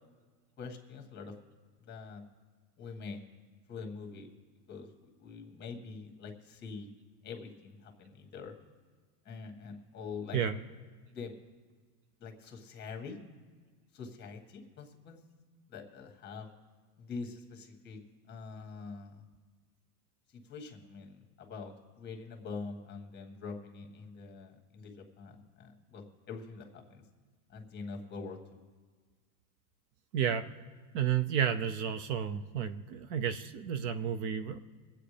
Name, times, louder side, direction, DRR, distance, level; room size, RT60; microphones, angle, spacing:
voice 1, 0.6-1.3 1.8-2.2 2.8-3.2 3.7-4.3 4.7-6.9 7.2-8.5 9.3-10.4 11.1-11.3 12.2-13.2 13.9-15.2 15.7-16.5 17.0-18.0 18.3-19.2 20.3-24.9 25.2-27.0 27.5-28.6, left 4 dB, 25° left, 3 dB, 1.8 m, -44 dB
voice 2, 30.1-30.5 30.9-34.6, right 8 dB, 55° right, 10 dB, 0.6 m, -31 dB
24.0 x 8.8 x 3.4 m, 1.5 s
supercardioid pair, 150°, 44 cm